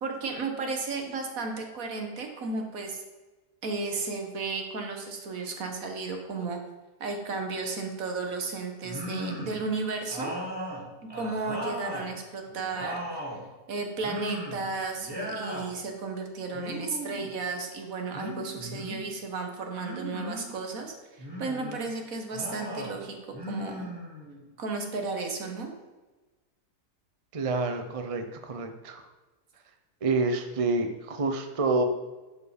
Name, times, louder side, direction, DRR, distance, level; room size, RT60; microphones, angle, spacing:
voice 1, 0.0-3.0 3.6-6.6 7.0-10.3 11.1-13.3 13.7-23.2 23.5-23.9 24.6-25.7, right 4 dB, 60° right, 3 dB, 1.7 m, -34 dB
sound 1, 8.8-9.6 10.1-12.1 12.5-13.4 14.0-14.7 15.0-15.7 16.5-17.3 18.1-19.0 19.8-20.5 21.2-21.8 22.3-22.9 23.3-24.4, equal, 15° right, 2.4 m, -37 dB
voice 2, 27.3-29.0 30.0-31.8, right 3 dB, 40° right, 6 dB, 0.5 m, -28 dB
11.0 x 4.8 x 5.0 m, 1.2 s
omnidirectional pair, 1.7 m